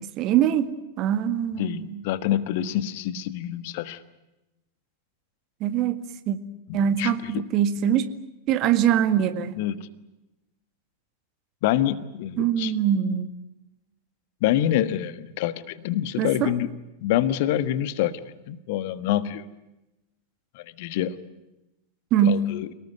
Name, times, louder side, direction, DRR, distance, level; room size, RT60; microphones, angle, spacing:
voice 1, 0.2-0.7 1.0-2.0 5.6-6.0 6.3-6.4 6.7-8.1 8.5-9.5 12.4-13.3 16.2-16.5 22.1-22.5, right 9 dB, 35° right, 11 dB, 1.8 m, -23 dB
voice 2, 1.5-4.0 6.7-7.4 9.5-9.9 11.6-12.7 14.4-16.7 17.0-18.2 18.5-19.5 20.5-21.2 22.2-22.7, left 12 dB, 50° left, 14 dB, 1.4 m, -26 dB
29.0 x 19.0 x 9.4 m, 0.97 s
figure-of-eight pair, 90°, 0 cm